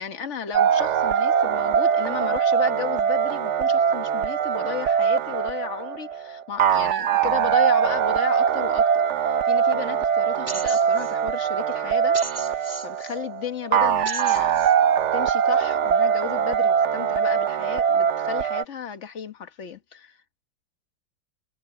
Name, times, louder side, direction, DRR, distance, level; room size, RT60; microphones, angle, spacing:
voice 1, 0.0-12.2 12.5-14.6 15.1-20.2, left 8 dB, 40° left, 1.4 m, -34 dB
sound 1, 0.5-18.6, right 8 dB, 80° right, 0.6 m, -22 dB
sound 2, 10.5-11.1 12.1-13.1 14.0-14.7, right 2 dB, 20° right, 2.6 m, -35 dB
omnidirectional pair, 2.1 m